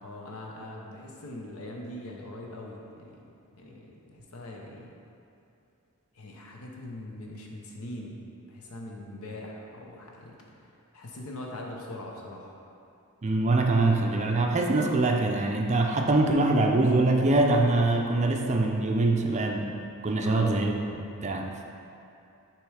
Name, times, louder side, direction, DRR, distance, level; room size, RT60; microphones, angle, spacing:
voice 1, 0.0-3.2 3.5-4.9 6.1-8.2 8.5-12.6 20.2-20.6, left 1 dB, 75° left, -1 dB, 0.8 m, -41 dB
voice 2, 13.2-19.7 20.0-21.5, right 2 dB, 30° right, 2 dB, 0.4 m, -24 dB
6.4 x 3.1 x 4.8 m, 2.7 s
head